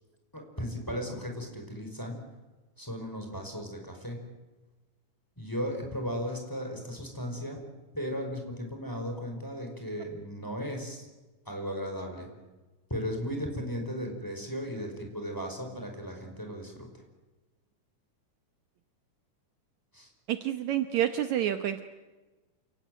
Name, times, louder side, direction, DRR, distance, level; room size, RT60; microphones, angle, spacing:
voice 1, 0.3-2.2 2.8-4.2 5.4-7.6 7.9-11.1 11.4-12.3 12.9-16.9 19.9-20.1, equal, 5° left, 2 dB, 5.1 m, -36 dB
voice 2, 20.3-21.8, right 11 dB, 70° right, 8 dB, 2.2 m, -28 dB
28.5 x 18.0 x 9.3 m, 1.2 s
omnidirectional pair, 3.7 m